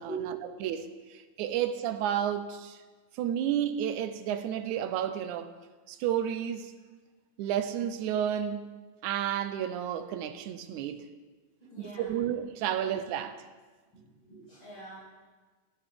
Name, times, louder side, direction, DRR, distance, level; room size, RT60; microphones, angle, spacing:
voice 1, 0.1-0.5 11.6-12.1 13.1-13.3 13.9-15.1, right 4 dB, 40° left, 5.8 m, -42 dB
voice 2, 0.6-2.8 3.2-5.5 5.9-6.7 7.4-8.6 9.0-11.0 11.8-13.3, right 10 dB, 85° right, 2.1 m, -31 dB
16.0 x 11.0 x 3.6 m
omnidirectional pair, 3.4 m